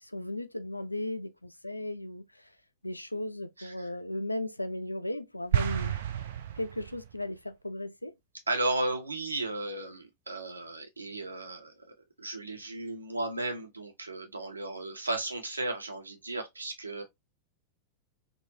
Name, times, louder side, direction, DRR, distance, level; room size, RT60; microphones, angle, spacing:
voice 1, 0.0-2.5 2.8-6.0 6.6-8.1, left 1 dB, 85° left, 0.3 m, -36 dB
voice 2, 3.6-3.9 8.5-17.0, right 2 dB, 80° right, 0.8 m, -35 dB
sound 1, 5.5-7.2, right 10 dB, 60° right, 0.4 m, -30 dB
3.7 x 2.1 x 2.7 m
figure-of-eight pair, 90°, 0 cm